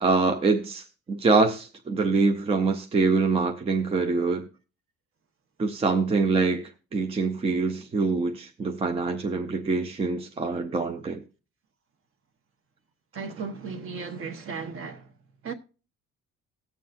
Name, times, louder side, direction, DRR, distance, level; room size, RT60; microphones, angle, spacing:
voice 1, 0.0-4.5 5.6-11.2, right 4 dB, 20° right, 0.5 m, -25 dB
voice 2, 13.1-15.1 15.4-15.5, right 5 dB, 45° right, 1.2 m, -35 dB
19.0 x 7.4 x 2.5 m
cardioid pair, 170°, 30 cm